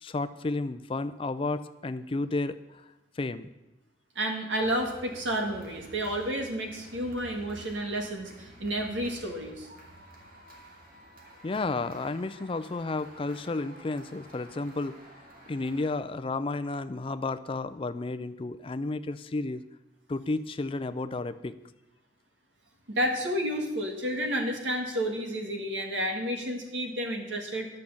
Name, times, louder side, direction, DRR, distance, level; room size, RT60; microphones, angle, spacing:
voice 1, 0.0-2.9 3.2-3.5 11.4-15.0 15.5-19.6 20.1-21.5, left 3 dB, 30° left, 12 dB, 0.4 m, -32 dB
voice 2, 4.2-9.7 22.9-27.7, equal, 90° right, 3 dB, 1.8 m, -31 dB
sound 1, 4.6-16.0, right 1 dB, 50° right, 2.2 m, -51 dB
10.0 x 6.5 x 7.1 m, 0.98 s
head